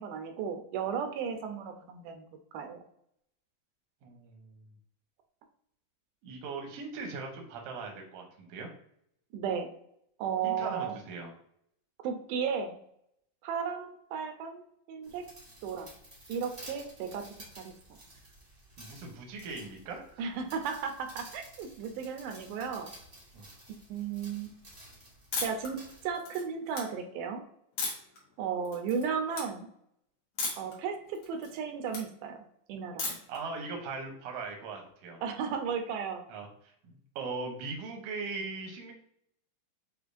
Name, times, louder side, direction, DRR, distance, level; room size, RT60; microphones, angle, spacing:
voice 1, 0.0-2.3 2.5-2.8 9.3-9.7 10.2-11.0 12.0-12.8 13.4-15.3 15.6-16.0 16.3-17.7 20.2-22.9 23.9-24.6 25.4-27.4 28.4-29.7 30.6-33.2 35.2-36.2, right 6 dB, 90° right, 6 dB, 2.1 m, -35 dB
voice 2, 4.0-4.6 6.2-8.7 10.4-11.3 18.8-20.3 23.3-23.5 33.3-35.2 36.3-38.9, right 4 dB, 70° right, 2 dB, 1.5 m, -40 dB
sound 1, 15.0-26.1, right 1 dB, 35° right, 0.8 m, -53 dB
sound 2, 25.3-25.7 26.1-26.8 27.8-28.2 28.6-29.0 29.3-29.5 30.4-30.7 31.1-32.0 33.0-33.4, left 3 dB, 65° left, 2.1 m, -35 dB
6.5 x 2.4 x 2.6 m, 0.71 s
omnidirectional pair, 3.6 m